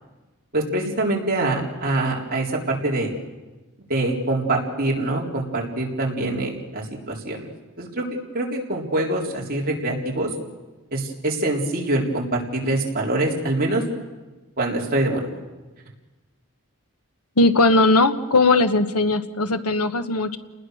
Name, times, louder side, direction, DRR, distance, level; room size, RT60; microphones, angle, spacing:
voice 1, 0.5-3.1 3.9-7.5 7.8-8.1 8.3-10.3 10.9-13.8 14.6-15.4, right 2 dB, 40° right, -1 dB, 3.9 m, -24 dB
voice 2, 17.4-20.4, left 2 dB, 90° left, 10 dB, 1.3 m, -18 dB
29.5 x 20.0 x 6.5 m, 1.2 s
head